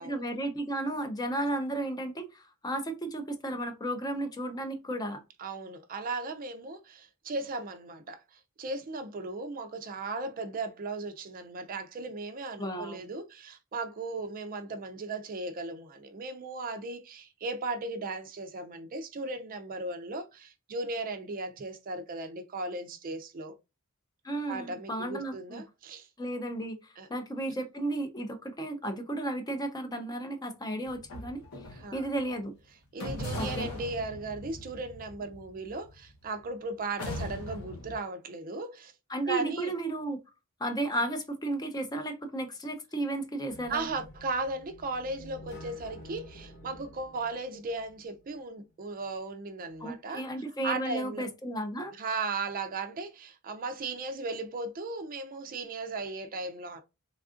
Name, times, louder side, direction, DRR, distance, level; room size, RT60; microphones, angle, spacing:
voice 1, 0.0-5.2 12.6-13.0 24.2-25.6 26.2-31.4 31.9-32.5 33.4-33.7 39.1-40.2 40.6-43.9 49.8-51.9, right 1 dB, 20° left, 0.5 m, -33 dB
voice 2, 5.4-23.5 24.5-26.1 27.0-27.1 31.7-32.1 32.9-38.9 39.3-39.7 43.7-50.2 50.6-51.3 51.9-56.8, right 3 dB, 40° right, 0.4 m, -36 dB
sound 1, 30.8-32.3 33.0-36.4 37.0-38.0, left 1 dB, 75° left, 0.9 m, -40 dB
sound 2, 43.5-48.4, equal, 50° left, 1.0 m, -50 dB
3.4 x 2.4 x 2.4 m
head